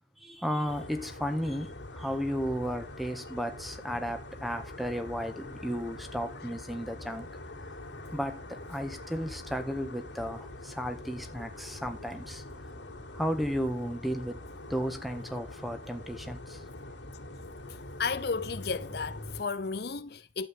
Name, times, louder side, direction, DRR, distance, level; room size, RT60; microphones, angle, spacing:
voice 1, 0.2-7.3 8.1-12.4 13.1-14.4 14.7-16.6, equal, ahead, 1.5 m, -34 dB
sound 1, 0.7-19.4, left 1 dB, 90° left, 3.0 m, -44 dB
voice 2, 18.0-20.5, left 5 dB, 60° left, 0.7 m, -33 dB
12.0 x 8.0 x 3.6 m
head